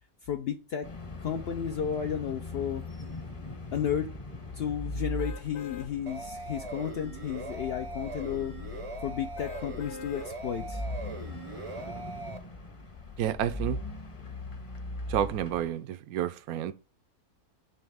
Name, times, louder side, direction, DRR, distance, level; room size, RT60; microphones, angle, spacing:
voice 1, 0.2-0.9 1.2-2.8 3.7-4.1 4.5-8.6 9.0-10.8, left 8 dB, 75° left, 0.5 m, -33 dB
sound 1, 0.8-15.7, left 2 dB, 25° left, 0.7 m, -40 dB
sound 2, 5.2-5.9 6.4-6.6 9.4-10.3 10.9-11.0, left 8 dB, 90° left, 1.2 m, -44 dB
sound 3, 6.1-12.4, right 3 dB, 35° right, 0.5 m, -41 dB
voice 2, 13.2-13.8 15.1-16.7, right 11 dB, 75° right, 1.0 m, -30 dB
8.5 x 3.2 x 3.4 m
omnidirectional pair, 1.6 m